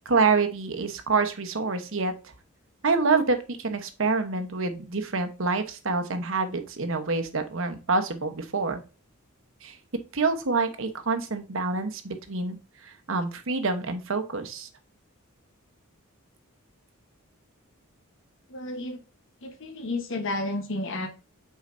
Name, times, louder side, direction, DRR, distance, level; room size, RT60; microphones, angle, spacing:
voice 1, 0.0-2.1 2.8-8.8 9.6-9.8 10.1-12.6 12.8-14.7, right 4 dB, 65° right, 7 dB, 1.0 m, -27 dB
voice 2, 18.5-19.0 19.4-21.1, left 2 dB, 60° left, 6 dB, 1.1 m, -31 dB
7.4 x 4.9 x 2.6 m, 0.32 s
head